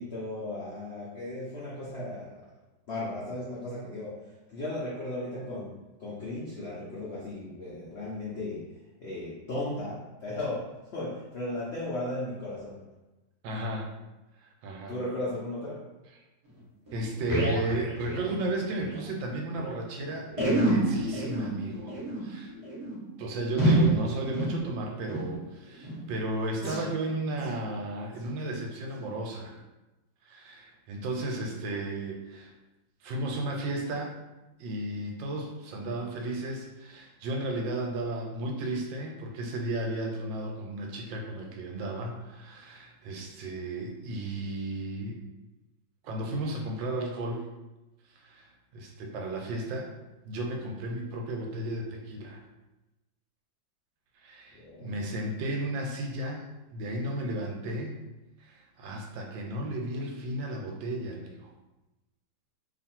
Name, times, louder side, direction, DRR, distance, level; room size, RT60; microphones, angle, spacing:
voice 1, 0.0-2.5 2.9-8.7 9.0-12.8 14.9-15.9 54.5-54.9, left 1 dB, 85° left, -6 dB, 0.5 m, -36 dB
voice 2, 13.4-13.9 14.6-14.9 16.9-22.5 23.2-29.6 30.2-32.5 33.0-34.1 34.6-45.2 46.0-47.5 48.1-49.9 50.2-52.4 54.2-56.4 56.7-58.0 58.4-61.4, right 1 dB, 80° right, 0 dB, 1.3 m, -34 dB
sound 1, 16.5-16.6 16.9-19.0 19.3-19.4 19.5-19.7 20.3-25.4 25.8-26.1 26.6-26.9 27.3-27.6 28.1-28.2 28.9-29.0, right 1 dB, 25° right, 0.6 m, -29 dB
2.9 x 2.5 x 4.3 m, 1.0 s
omnidirectional pair, 2.1 m